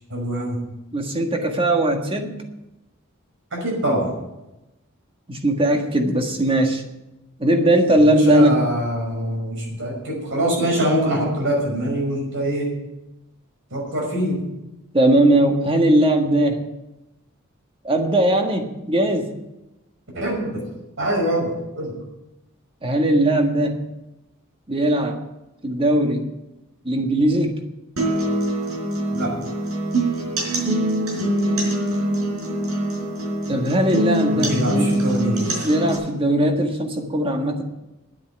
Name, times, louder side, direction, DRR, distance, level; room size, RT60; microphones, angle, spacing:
voice 1, 0.1-0.6 3.5-4.1 8.3-12.7 13.7-14.4 20.1-20.7 21.0-21.9 29.1-29.3 34.3-35.6, right 1 dB, 60° right, -1 dB, 5.6 m, -24 dB
voice 2, 0.9-2.4 5.3-6.8 7.4-8.6 14.9-16.6 17.8-19.3 22.8-23.8 24.7-25.2 25.6-26.3 26.8-27.6 33.5-34.9 35.6-37.6, right 1 dB, 25° right, 4 dB, 1.6 m, -19 dB
sound 1, 28.0-36.0, right 1 dB, 80° right, 4.6 m, -24 dB
10.5 x 8.3 x 9.6 m, 0.97 s
head